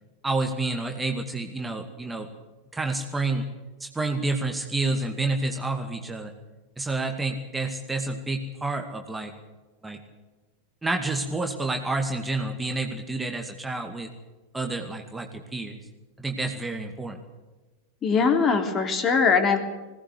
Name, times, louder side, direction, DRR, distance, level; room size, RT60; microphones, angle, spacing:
voice 1, 0.2-2.3 2.7-3.5 3.8-6.3 6.8-9.3 9.8-10.0 10.8-14.1 14.5-15.8 16.2-17.2, right 2 dB, 10° right, 4 dB, 2.3 m, -29 dB
voice 2, 18.0-19.6, left 5 dB, 25° left, 6 dB, 3.3 m, -21 dB
21.5 x 18.5 x 8.0 m, 1.2 s
figure-of-eight pair, 90°, 0 cm